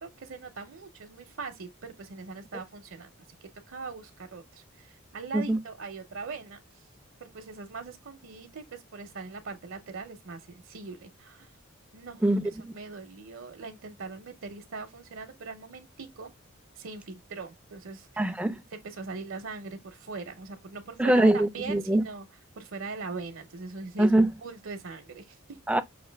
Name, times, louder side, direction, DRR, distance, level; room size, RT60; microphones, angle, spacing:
voice 1, 0.0-3.1 3.4-6.9 7.2-11.5 11.9-12.2 12.7-16.3 16.7-18.3 18.7-22.3 22.6-25.6, right 4 dB, 70° right, 0.7 m, -41 dB
voice 2, 12.2-12.7 18.2-18.6 21.0-22.0 24.0-24.3 25.7-25.8, right 1 dB, 5° right, 0.4 m, -23 dB
5.8 x 2.5 x 3.3 m
head